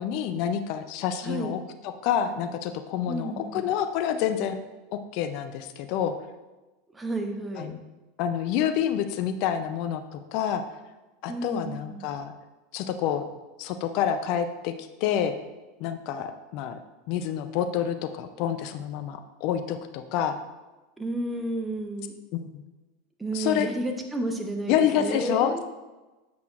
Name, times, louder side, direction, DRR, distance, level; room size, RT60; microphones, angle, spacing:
voice 1, 0.0-4.6 4.9-6.1 7.6-7.8 8.2-10.6 11.2-12.3 12.7-13.3 13.6-14.7 15.0-15.3 15.8-16.8 17.1-20.4 22.3-22.6 23.3-23.7 24.7-25.7, left 9 dB, 55° left, 9 dB, 0.5 m, -28 dB
voice 2, 1.2-1.6 3.1-3.7 6.9-7.8 11.3-12.1 21.0-22.1 23.2-25.7, right 2 dB, 15° right, 4 dB, 0.9 m, -32 dB
7.6 x 5.6 x 2.4 m, 1.1 s
hypercardioid pair, 90°, 0 cm